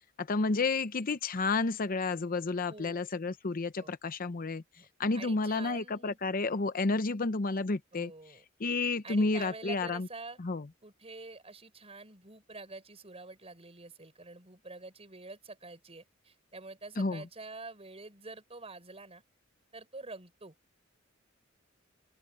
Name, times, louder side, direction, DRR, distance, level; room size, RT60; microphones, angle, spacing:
voice 1, 0.2-4.6 5.0-8.1 8.6-10.1 10.4-10.7 17.0-17.2, left 3 dB, 45° left, 0.7 m, -31 dB
voice 2, 2.7-3.0 3.8-3.9 4.8-4.9 5.1-6.2 7.9-8.4 9.0-10.4 10.8-19.2 19.7-20.5, right 3 dB, 30° right, 5.9 m, -47 dB
open air
head